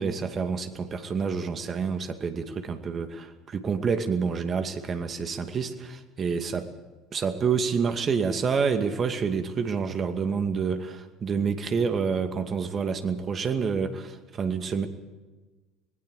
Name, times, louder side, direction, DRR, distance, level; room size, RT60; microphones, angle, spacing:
voice 1, 0.0-6.7 7.1-14.9, right 5 dB, 35° right, 8 dB, 2.3 m, -28 dB
25.5 x 20.5 x 4.9 m, 1.3 s
hypercardioid pair, 65°, 0 cm